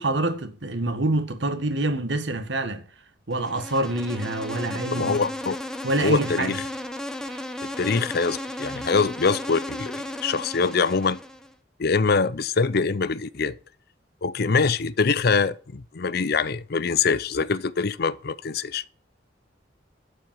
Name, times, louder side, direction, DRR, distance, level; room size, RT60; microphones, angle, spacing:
voice 1, 0.0-2.8 3.3-5.2 5.8-6.5 7.3-7.4 8.7-8.8, right 2 dB, 70° right, 1.5 m, -26 dB
Insect, 3.3-11.5, left 1 dB, 5° left, 1.0 m, -34 dB
voice 2, 4.9-5.6 6.0-6.6 7.6-11.2 11.8-13.6 14.2-18.9, left 4 dB, 55° left, 0.6 m, -24 dB
12.0 x 5.1 x 7.5 m
head